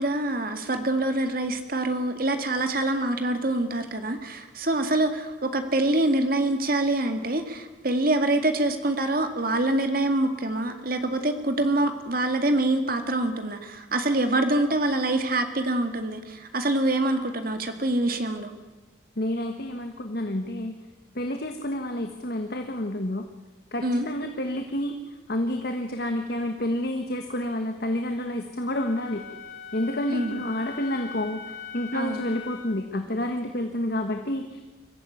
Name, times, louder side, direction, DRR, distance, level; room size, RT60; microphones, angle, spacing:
voice 1, 0.0-18.5 23.8-24.1 30.1-30.4 31.9-32.2, right 2 dB, 50° right, 7 dB, 2.1 m, -25 dB
voice 2, 19.2-20.8 21.1-23.2 23.7-24.9 25.3-29.2 29.7-34.6, left 1 dB, 55° left, 5 dB, 1.5 m, -29 dB
Wind instrument woodwind instrument, 28.7-32.8, left 7 dB, 75° left, 2.8 m, -41 dB
23.5 x 15.0 x 9.4 m, 1.2 s
head